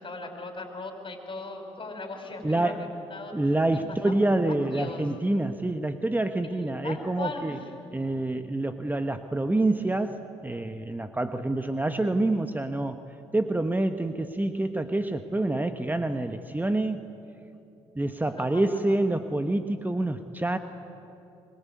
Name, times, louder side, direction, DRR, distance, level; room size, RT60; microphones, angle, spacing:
voice 1, 0.0-3.3 3.9-4.2 4.5-5.1 6.4-7.7 18.2-19.0, left 3 dB, 35° left, 5 dB, 5.8 m, -39 dB
voice 2, 2.4-2.8 3.3-7.6 7.9-13.0 13.3-17.0 17.9-20.6, right 2 dB, 10° right, 8 dB, 1.2 m, -27 dB
24.0 x 22.0 x 9.6 m, 2.8 s
hypercardioid pair, 55°, 14 cm